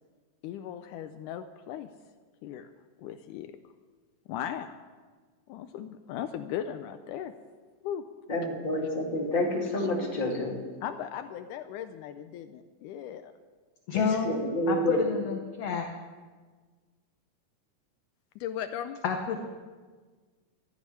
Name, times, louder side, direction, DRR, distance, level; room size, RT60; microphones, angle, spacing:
voice 1, 0.4-1.9 2.4-2.7 3.0-3.5 4.3-4.8 5.5-7.3 7.8-8.1 9.8-10.2 10.8-13.3 14.7-15.0 18.4-19.0, left 9 dB, 80° left, 9 dB, 2.0 m, -38 dB
voice 2, 8.3-10.6 13.9-15.0, left 1 dB, 15° left, -2 dB, 2.4 m, -29 dB
voice 3, 13.9-15.9 19.0-19.4, left 6 dB, 65° left, 3 dB, 1.8 m, -29 dB
13.5 x 8.2 x 9.7 m, 1.4 s
omnidirectional pair, 3.7 m